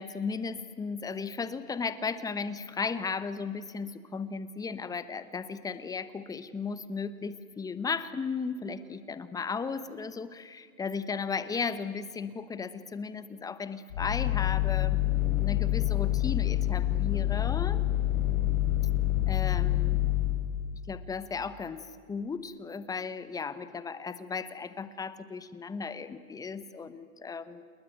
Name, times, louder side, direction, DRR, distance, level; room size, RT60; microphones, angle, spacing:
voice 1, 0.0-17.8 19.3-20.0 20.9-27.6, left 5 dB, 10° left, 13 dB, 0.9 m, -35 dB
sound 1, 13.9-20.5, left 15 dB, 65° left, 4.3 m, -27 dB
29.5 x 20.5 x 9.2 m, 2.1 s
hypercardioid pair, 140°, 44 cm